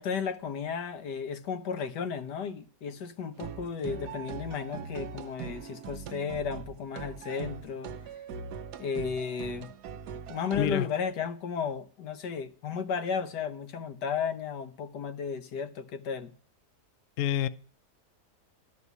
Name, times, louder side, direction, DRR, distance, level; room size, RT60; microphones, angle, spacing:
voice 1, 0.0-7.9 8.8-9.7 10.3-16.3, left 6 dB, 85° left, 1.6 m, -34 dB
sound 1, 3.4-10.9, right 7 dB, 80° right, 1.3 m, -41 dB
voice 2, 10.6-10.9 17.2-17.5, left 11 dB, 60° left, 0.9 m, -27 dB
12.5 x 5.2 x 8.1 m
omnidirectional pair, 1.8 m